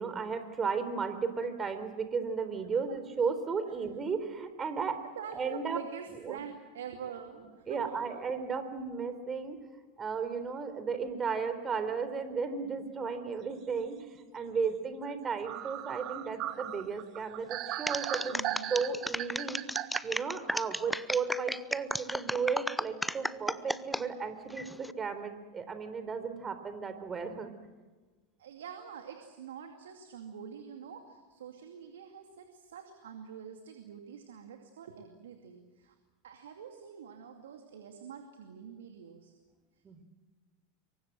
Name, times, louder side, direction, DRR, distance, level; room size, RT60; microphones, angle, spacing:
voice 1, 0.0-5.0 5.3-5.8 6.3-6.4 7.4-9.6 10.0-18.4 18.7-19.6 20.0-27.5 39.8-40.0, right 5 dB, 25° right, 10 dB, 4.0 m, -34 dB
voice 2, 5.0-8.0 18.3-18.8 28.4-35.9 36.2-39.3, right 7 dB, 75° right, 5 dB, 2.5 m, -46 dB
sound 1, 15.0-15.1 15.4-20.0, right 14 dB, 50° right, 1.5 m, -37 dB
sound 2, 17.9-24.0 24.5-24.9, left 1 dB, 5° left, 0.8 m, -34 dB
26.0 x 23.5 x 7.7 m, 1.3 s
hypercardioid pair, 85°, 0 cm